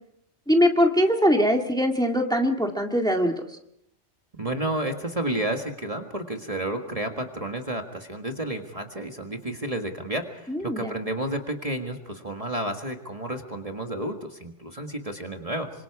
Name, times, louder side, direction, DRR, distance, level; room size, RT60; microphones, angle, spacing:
voice 1, 0.5-3.3 10.5-11.0, equal, 5° left, 3 dB, 1.9 m, -22 dB
voice 2, 4.3-15.7, right 1 dB, 30° right, 4 dB, 1.7 m, -31 dB
27.0 x 25.5 x 4.8 m, 0.75 s
omnidirectional pair, 1.2 m